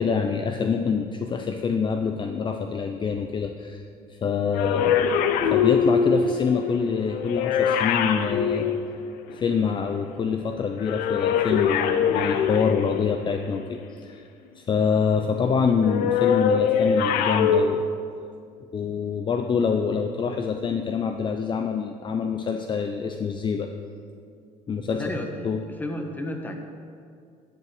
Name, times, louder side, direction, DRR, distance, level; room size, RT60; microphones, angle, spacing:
voice 1, 0.0-3.8 4.1-5.0 5.5-8.8 9.3-14.2 14.6-17.8 18.7-23.7 24.7-25.1 25.4-25.6, left 6 dB, 35° left, 5 dB, 0.6 m, -26 dB
sound 1, 4.5-9.6 10.8-13.4 15.8-17.6, left 7 dB, 80° left, 0.7 m, -23 dB
voice 2, 24.9-25.3 25.8-26.6, left 1 dB, 10° left, 3 dB, 1.3 m, -31 dB
10.5 x 5.5 x 7.9 m, 2.3 s
cardioid pair, 100°, 15 cm